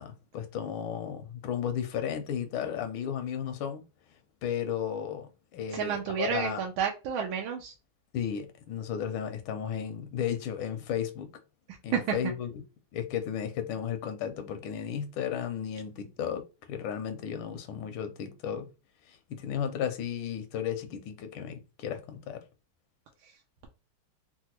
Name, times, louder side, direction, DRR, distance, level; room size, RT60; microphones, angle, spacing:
voice 1, 0.0-3.8 4.4-6.6 8.1-11.3 11.8-12.6 12.9-18.7 19.1-22.4, left 8 dB, 85° left, 1.4 m, -34 dB
voice 2, 5.7-7.7 11.9-12.2, right 7 dB, 85° right, 1.4 m, -30 dB
3.9 x 2.3 x 2.8 m
omnidirectional pair, 2.2 m